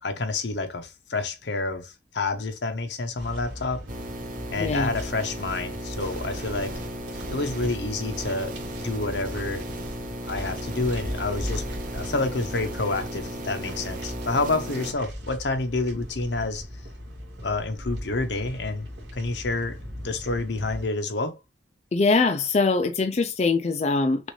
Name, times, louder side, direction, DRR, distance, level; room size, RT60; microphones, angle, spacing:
voice 1, 0.0-3.8 4.5-6.8 7.3-8.5 8.8-9.6 10.3-16.6 17.4-18.9 19.1-21.4, left 3 dB, 75° left, 0.9 m, -28 dB
sound 1, 3.2-20.8, equal, 70° right, 2.1 m, -39 dB
sound 2, 3.9-14.9, equal, 45° right, 1.1 m, -35 dB
voice 2, 4.6-4.9 21.9-24.3, left 3 dB, 40° left, 0.4 m, -22 dB
6.2 x 2.6 x 3.1 m
head